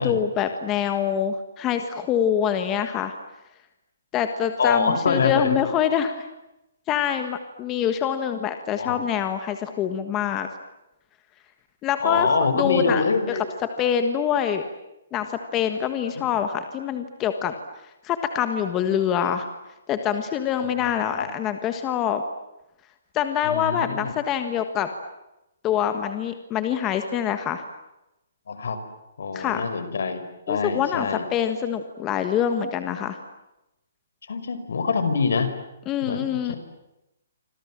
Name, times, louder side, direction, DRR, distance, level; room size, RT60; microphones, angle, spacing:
voice 1, 0.0-3.1 4.1-6.3 6.9-10.5 11.8-12.3 12.5-13.4 13.8-14.7 15.1-17.5 18.0-19.5 19.9-22.2 23.1-24.9 25.6-27.6 29.3-29.7 30.5-33.2 35.9-36.5, left 9 dB, 15° left, 8 dB, 1.5 m, -25 dB
voice 2, 4.6-5.6 8.8-9.0 12.0-13.4 16.2-16.3 20.6-20.9 21.1-21.3 23.4-24.1 28.5-28.8 29.2-31.2 34.3-35.5 36.0-36.2 36.5-36.6, left 4 dB, 70° left, 10 dB, 5.4 m, -25 dB
29.0 x 26.5 x 7.5 m, 0.92 s
hypercardioid pair, 175°, 0 cm